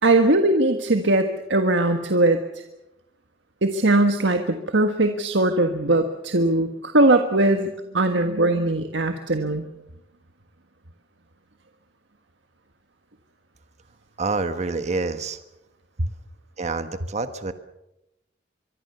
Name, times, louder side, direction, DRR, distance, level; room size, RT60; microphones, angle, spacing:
voice 1, 0.0-2.4 3.6-9.7, right 2 dB, 85° right, 6 dB, 1.6 m, -20 dB
voice 2, 14.2-15.4 16.6-17.5, right 3 dB, 40° right, 10 dB, 1.3 m, -27 dB
24.0 x 24.0 x 6.9 m, 0.89 s
head